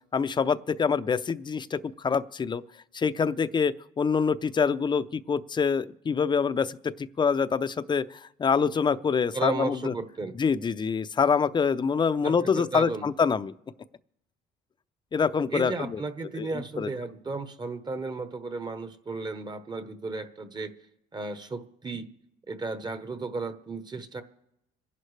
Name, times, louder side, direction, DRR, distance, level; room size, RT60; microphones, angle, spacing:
voice 1, 0.1-2.6 2.9-9.9 10.4-13.5 15.1-16.0 16.4-16.9, left 6 dB, 25° left, 13 dB, 0.6 m, -26 dB
voice 2, 9.3-10.4 12.2-13.1 15.5-20.7 21.1-22.1 22.5-24.2, right 3 dB, 25° right, 10 dB, 1.1 m, -34 dB
27.0 x 11.0 x 3.3 m, 0.81 s
cardioid pair, 110°, 17 cm